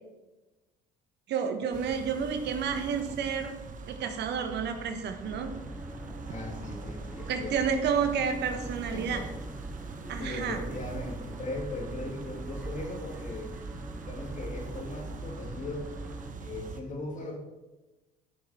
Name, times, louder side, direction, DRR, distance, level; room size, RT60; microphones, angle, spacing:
voice 1, 1.3-3.5 3.9-5.5 7.3-9.2 10.1-10.6, right 6 dB, 60° right, 7 dB, 1.2 m, -30 dB
sound 1, 1.7-16.8, right 4 dB, 45° right, 1.0 m, -43 dB
sound 2, 5.2-16.3, right 1 dB, 10° right, 0.9 m, -43 dB
voice 2, 6.3-7.6 8.9-9.3 10.2-13.5 14.0-15.9 16.4-17.4, left 2 dB, 40° left, 1 dB, 2.8 m, -38 dB
12.5 x 6.3 x 4.3 m, 1.1 s
hypercardioid pair, 60°, 19 cm